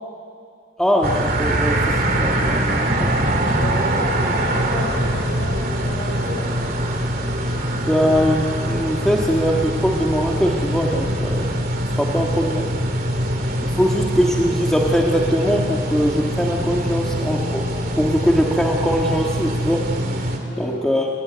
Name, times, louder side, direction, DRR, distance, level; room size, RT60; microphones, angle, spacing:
voice 1, 0.8-1.8 2.2-3.1 7.8-11.5 12.0-12.7 13.6-17.6 18.0-19.8 20.6-21.1, equal, 5° left, -2 dB, 1.7 m, -21 dB
sound 1, 1.0-20.4, right 1 dB, 50° right, 2.8 m, -23 dB
voice 2, 3.5-6.5 20.4-20.8, left 1 dB, 50° left, -1 dB, 6.9 m, -32 dB
29.5 x 15.5 x 9.6 m, 2.3 s
head